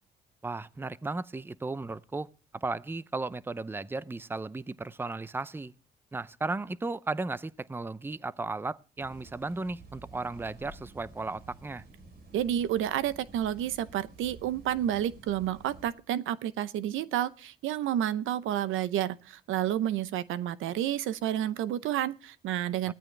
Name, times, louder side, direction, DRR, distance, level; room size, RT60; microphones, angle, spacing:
voice 1, 0.4-2.3 2.5-5.7 6.1-11.8 22.9-23.0, right 3 dB, 10° right, 0.5 m, -35 dB
sound 1, 9.0-16.0, right 3 dB, 55° right, 3.7 m, -51 dB
voice 2, 12.3-22.9, right 11 dB, 85° right, 0.7 m, -30 dB
16.5 x 13.5 x 3.3 m
cardioid pair, 90°, 20 cm